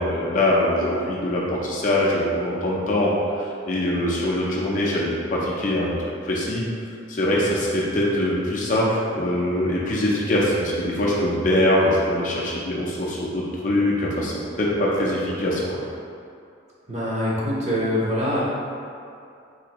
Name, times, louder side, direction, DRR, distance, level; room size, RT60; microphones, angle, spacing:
voice 1, 0.0-5.9 6.2-6.6 7.1-15.8, left 1 dB, 40° left, -5 dB, 0.5 m, -23 dB
voice 2, 16.9-18.4, left 1 dB, 35° right, -7 dB, 0.7 m, -24 dB
4.0 x 2.6 x 2.9 m, 2.4 s
head